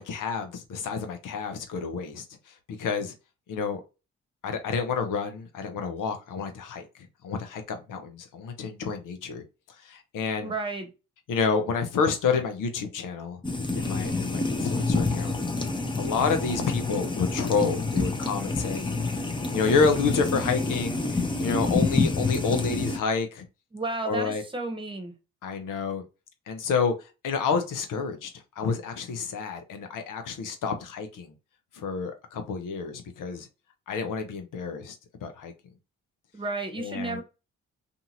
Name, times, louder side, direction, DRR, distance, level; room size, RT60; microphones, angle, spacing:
voice 1, 0.0-2.2 2.8-3.1 3.5-3.8 4.4-6.8 7.2-9.4 9.8-10.5 11.3-13.4 13.7-15.4 16.0-19.2 19.5-23.5 24.0-24.4 25.4-26.0 26.5-28.3 28.6-31.3 31.7-33.5 33.9-35.0 35.2-35.5 36.8-37.2, left 5 dB, 65° left, 0.9 m, -29 dB
voice 2, 10.4-10.9 23.7-25.1 36.3-37.2, right 3 dB, 15° right, 1.1 m, -32 dB
sound 1, 13.4-23.0, left 3 dB, 15° left, 0.8 m, -28 dB
2.7 x 2.5 x 2.7 m
hypercardioid pair, 45°, 34 cm